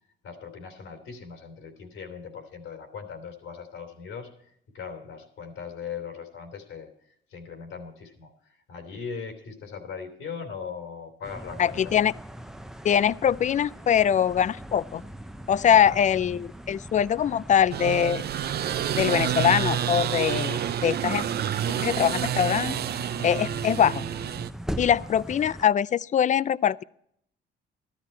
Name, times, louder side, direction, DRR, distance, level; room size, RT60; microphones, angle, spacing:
voice 1, 0.2-6.9 7.3-12.0 15.6-16.0 23.4-23.7 24.8-25.1, left 6 dB, 85° left, 4 dB, 3.0 m, -40 dB
sound 1, 11.2-25.7, right 1 dB, ahead, 0.6 m, -41 dB
voice 2, 11.6-12.1 12.8-15.0 15.5-18.2 18.9-21.2 21.7-22.8 23.2-24.0 24.8-26.8, left 9 dB, 40° left, 20 dB, 0.4 m, -23 dB
sound 2, 17.7-24.5, right 10 dB, 55° right, 0.5 m, -28 dB
13.5 x 12.0 x 4.4 m, 0.70 s
cardioid pair, 90°, 20 cm